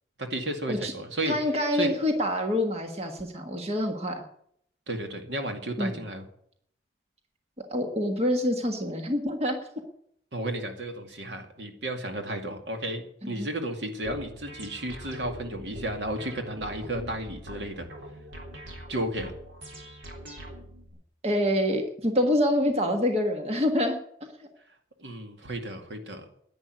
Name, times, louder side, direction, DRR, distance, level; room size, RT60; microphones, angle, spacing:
voice 1, 0.2-1.9 4.9-6.3 10.3-17.9 18.9-19.3 25.0-26.2, right 1 dB, 75° right, 5 dB, 2.2 m, -33 dB
voice 2, 1.3-4.2 5.8-6.0 7.7-9.6 13.2-13.5 21.2-24.0 24.4-24.5, left 1 dB, 35° right, 4 dB, 1.5 m, -26 dB
sound 1, 14.0-20.9, equal, 90° right, 3.7 m, -43 dB
10.5 x 10.0 x 9.3 m, 0.68 s
head